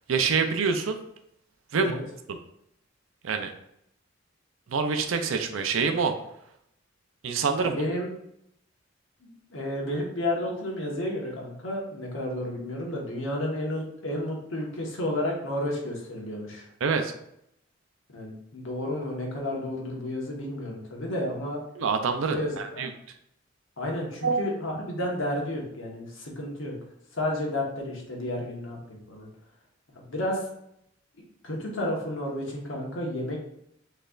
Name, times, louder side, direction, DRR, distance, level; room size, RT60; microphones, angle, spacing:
voice 1, 0.1-1.0 1.7-2.0 2.3-2.4 3.2-3.5 4.7-6.1 7.2-7.8 16.8-17.1 21.8-22.9 24.2-24.4, right 5 dB, 85° right, 6 dB, 0.5 m, -26 dB
voice 2, 7.6-8.1 9.2-16.6 18.1-21.6 22.3-22.9 23.8-26.7 27.1-29.3 29.9-30.4 31.4-33.4, left 1 dB, 80° left, -1 dB, 1.3 m, -31 dB
6.5 x 3.2 x 2.4 m, 0.75 s
head